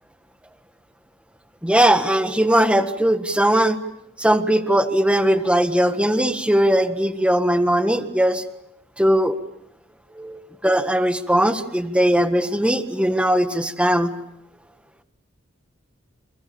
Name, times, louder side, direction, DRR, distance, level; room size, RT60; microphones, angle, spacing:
voice 1, 1.6-3.8 4.2-8.4 9.0-9.4 10.1-14.1, right 1 dB, 5° right, 8 dB, 1.5 m, -19 dB
30.0 x 28.0 x 7.0 m, 0.80 s
head